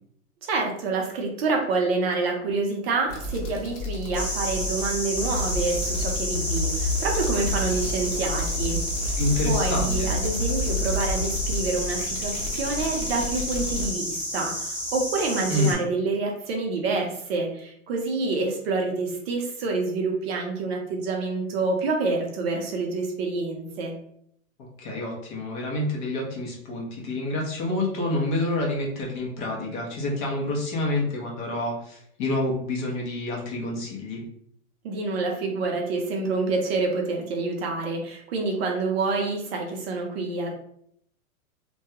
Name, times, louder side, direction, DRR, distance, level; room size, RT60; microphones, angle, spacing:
voice 1, 0.4-9.2 9.4-23.9 34.8-40.5, right 3 dB, 45° right, 1 dB, 0.6 m, -27 dB
sound 1, 3.1-13.9, left 2 dB, 65° left, 1.0 m, -30 dB
sound 2, 4.1-15.7, equal, 5° right, 0.4 m, -31 dB
voice 2, 9.2-10.1 15.5-15.7 24.6-34.2, left 2 dB, 35° left, -2 dB, 0.7 m, -28 dB
2.2 x 2.2 x 2.8 m, 0.68 s
hypercardioid pair, 140°, 42 cm